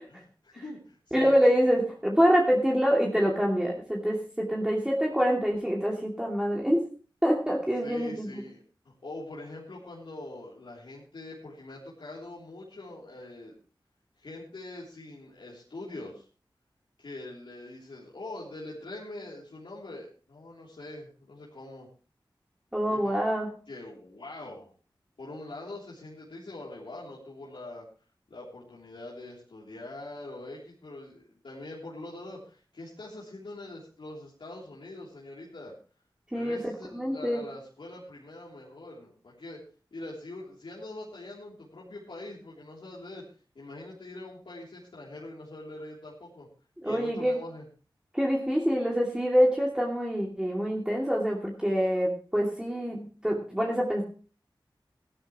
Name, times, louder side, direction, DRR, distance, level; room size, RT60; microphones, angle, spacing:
voice 1, 0.1-1.3 7.8-8.6 8.8-13.6 14.2-16.2 17.0-21.9 22.8-23.2 23.7-24.7 25.2-27.8 28.3-35.7 36.3-39.6 39.9-43.2 43.5-46.5 46.8-47.6, left 2 dB, 75° left, -6 dB, 3.3 m, -43 dB
voice 2, 1.1-6.9 7.2-8.4 22.7-23.5 36.3-37.4 46.8-47.4 48.1-54.0, equal, 10° right, -3 dB, 2.6 m, -26 dB
16.0 x 12.0 x 3.1 m, 0.37 s
wide cardioid pair, 60°, 9 cm